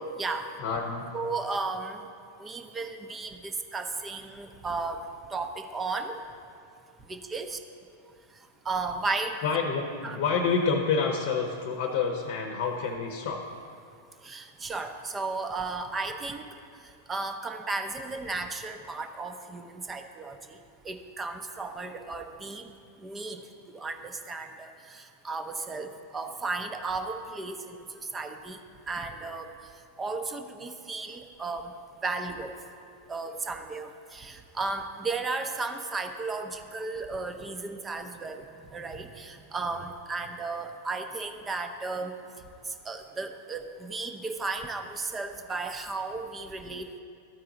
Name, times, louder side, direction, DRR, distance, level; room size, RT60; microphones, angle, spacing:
voice 1, 0.6-1.1 9.4-13.4, left 5 dB, 60° left, 3 dB, 0.8 m, -28 dB
voice 2, 1.1-2.1 2.4-5.0 5.3-6.2 7.1-7.6 8.7-9.4 10.0-10.2 14.2-16.5 17.1-20.6 20.8-22.7 23.0-23.4 23.7-27.8 28.1-28.6 28.9-29.5 30.0-31.7 32.0-32.5 33.1-38.4 38.7-42.1 42.7-46.9, right 3 dB, 20° right, 6 dB, 0.6 m, -34 dB
12.5 x 4.7 x 3.8 m, 2.4 s
hypercardioid pair, 100°, 0 cm